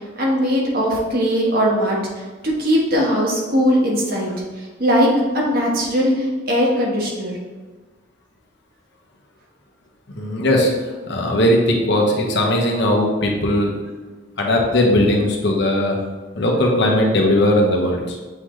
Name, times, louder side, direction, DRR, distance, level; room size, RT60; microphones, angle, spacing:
voice 1, 0.2-5.1 5.3-7.4, equal, 50° right, -3 dB, 1.4 m, -20 dB
voice 2, 10.1-10.7 11.1-13.7 14.4-16.0 16.4-18.2, left 1 dB, 55° left, 0 dB, 1.0 m, -18 dB
7.6 x 3.9 x 3.2 m, 1.3 s
head